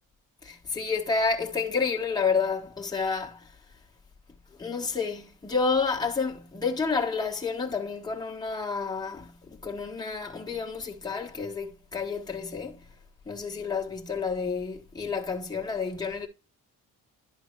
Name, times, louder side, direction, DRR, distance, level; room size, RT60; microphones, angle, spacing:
voice 1, 0.4-3.5 4.6-12.8 13.2-16.3, left 5 dB, 10° left, 1.3 m, -30 dB
11.0 x 3.9 x 4.6 m
cardioid pair, 105°, 35 cm